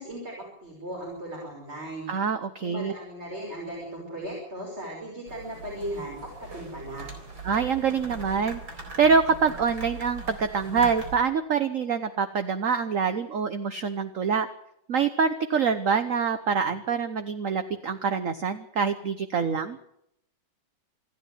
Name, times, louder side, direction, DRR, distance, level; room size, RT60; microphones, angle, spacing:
voice 1, 0.0-2.1 2.6-7.1, right 1 dB, 30° right, -2 dB, 6.1 m, -37 dB
voice 2, 2.1-2.9 7.4-8.6 9.0-14.5 14.9-19.8, right 6 dB, 50° right, 9 dB, 1.2 m, -25 dB
sound 1, 5.3-11.2, right 3 dB, 80° right, 4.8 m, -40 dB
27.5 x 10.5 x 9.4 m, 0.77 s
omnidirectional pair, 2.1 m